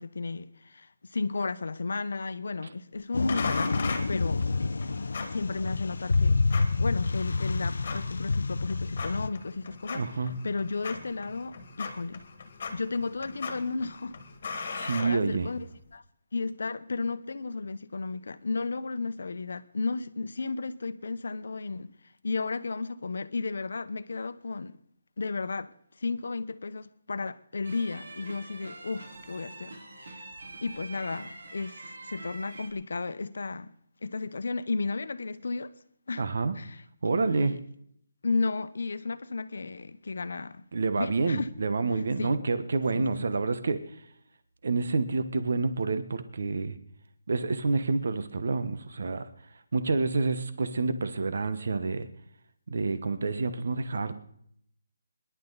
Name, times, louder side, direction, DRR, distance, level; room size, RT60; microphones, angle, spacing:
voice 1, 0.0-4.5 5.3-10.0 10.4-12.2 12.7-14.2 14.5-14.6 15.0-16.0 16.3-21.9 22.2-24.8 25.2-25.7 26.0-30.3 30.6-33.7 34.0-35.7 36.1-36.2 36.5-37.6 38.2-40.6 41.0-41.5 42.2-42.4 42.9-43.3, left 3 dB, 65° left, 1.0 m, -33 dB
sound 1, 3.1-9.3, left 3 dB, 85° left, 0.7 m, -28 dB
sound 2, 3.3-15.8, left 4 dB, 35° left, 1.9 m, -40 dB
voice 2, 9.9-10.4 14.7-15.5 36.2-36.5 37.0-37.6 40.7-43.8 44.6-46.8 47.3-49.3 49.7-52.1 52.7-54.1, right 3 dB, 50° right, 1.2 m, -28 dB
sound 3, 27.6-32.7, right 2 dB, 65° right, 4.3 m, -45 dB
25.0 x 11.5 x 4.1 m
hypercardioid pair, 180°, 0 cm